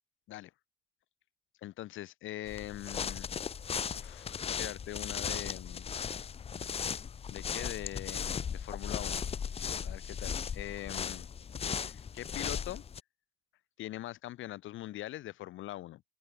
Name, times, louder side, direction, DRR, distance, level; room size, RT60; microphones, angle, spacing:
voice 1, 1.6-3.3 3.9-5.9 7.3-9.3 9.8-11.3 11.7-12.8 13.8-16.0, left 15 dB, 80° left, 1.3 m, -42 dB
sound 1, 2.5-13.0, left 7 dB, 30° left, 0.4 m, -37 dB
open air
cardioid pair, 90°, 20 cm